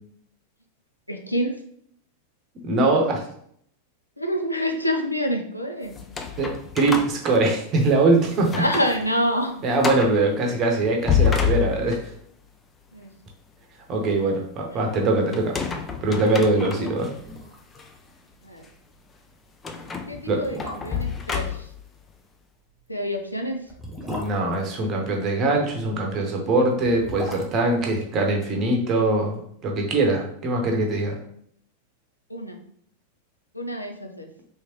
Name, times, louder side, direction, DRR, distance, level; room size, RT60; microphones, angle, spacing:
voice 1, 1.1-1.6 4.2-5.9 8.6-9.6 11.1-11.5 12.9-13.1 16.6-17.1 18.4-18.7 20.1-21.7 22.9-23.6 32.3-32.6 33.5-34.3, equal, 85° left, 4 dB, 0.5 m, -27 dB
voice 2, 2.6-3.3 6.4-8.5 9.6-12.0 13.9-15.6 16.0-17.1 20.3-20.4 24.1-31.2, right 2 dB, 30° right, 1 dB, 0.8 m, -22 dB
sound 1, 5.9-8.0 8.4-9.0 9.3-9.4 9.8-10.2 10.8-12.2 15.3-17.1 17.7-17.9 19.6-21.9, left 7 dB, 20° left, 0.4 m, -28 dB
sound 2, 17.2-17.8 18.1-18.2 18.6-18.8 19.5-19.6 20.2-21.2 22.7-25.4 26.6-28.9 29.1-29.2, left 1 dB, 5° right, 0.7 m, -38 dB
3.2 x 3.1 x 2.9 m, 0.65 s
figure-of-eight pair, 90°, 0 cm